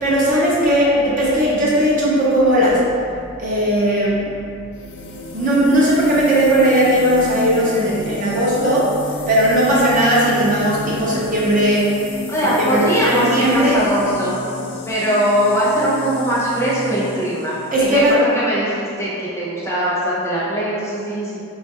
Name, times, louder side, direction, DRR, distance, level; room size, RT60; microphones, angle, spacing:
voice 1, 0.0-2.9 3.4-4.3 5.3-8.9 9.3-12.0 12.6-13.7 17.7-18.2, equal, 40° right, -6 dB, 0.5 m, -17 dB
sound 1, 4.7-18.1, left 2 dB, 55° left, 0.3 m, -33 dB
voice 2, 12.3-14.4 14.9-21.4, equal, 15° left, -9 dB, 0.6 m, -20 dB
3.8 x 2.3 x 2.8 m, 2.5 s
head